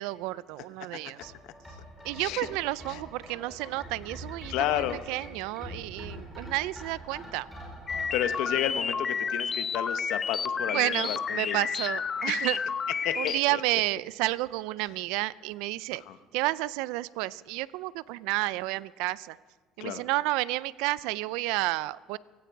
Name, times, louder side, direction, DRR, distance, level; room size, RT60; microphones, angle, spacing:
voice 1, 0.0-1.3 2.0-7.5 10.7-12.6 13.2-16.0 16.3-19.4 19.8-22.2, right 19 dB, 85° right, 19 dB, 0.4 m, -31 dB
sound 1, 1.2-10.0 10.3-10.4, equal, 5° left, 5.2 m, -45 dB
voice 2, 4.5-5.0 8.1-11.6 12.3-12.4 13.0-13.6 16.1-16.2 19.8-20.0, left 12 dB, 70° left, 11 dB, 0.8 m, -32 dB
sound 2, 7.9-13.4, left 6 dB, 25° left, 0.3 m, -31 dB
17.0 x 15.5 x 4.7 m, 1.5 s
cardioid pair, 150°, 0 cm